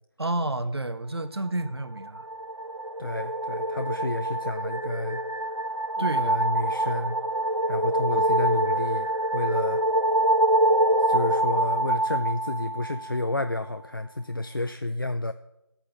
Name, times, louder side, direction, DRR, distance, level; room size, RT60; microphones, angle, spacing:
voice 1, 0.2-2.3 6.0-6.6, right 2 dB, 60° right, 11 dB, 1.0 m, -30 dB
sound 1, 1.9-13.3, right 1 dB, 90° right, 1.3 m, -25 dB
voice 2, 3.0-5.2 6.0-7.2 7.7-9.8 11.0-15.3, left 2 dB, 50° left, 9 dB, 0.4 m, -30 dB
9.5 x 8.7 x 7.0 m, 0.90 s
figure-of-eight pair, 175°, 15 cm